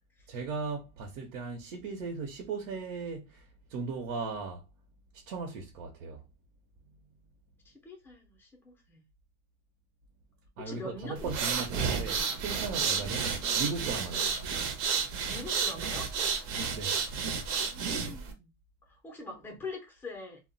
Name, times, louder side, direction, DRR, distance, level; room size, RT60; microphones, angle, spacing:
voice 1, 0.3-3.4 3.7-4.6 5.3-6.2 10.6-14.5 16.7-17.0, right 4 dB, 80° right, 0.8 m, -37 dB
voice 2, 7.6-9.0 10.7-12.3 14.1-14.3 15.3-16.4 17.3-18.5 18.8-20.4, left 3 dB, 5° left, 0.4 m, -44 dB
sound 1, 11.2-18.3, right 6 dB, 50° right, 0.6 m, -31 dB
2.2 x 2.1 x 3.8 m
cardioid pair, 165°, 40 cm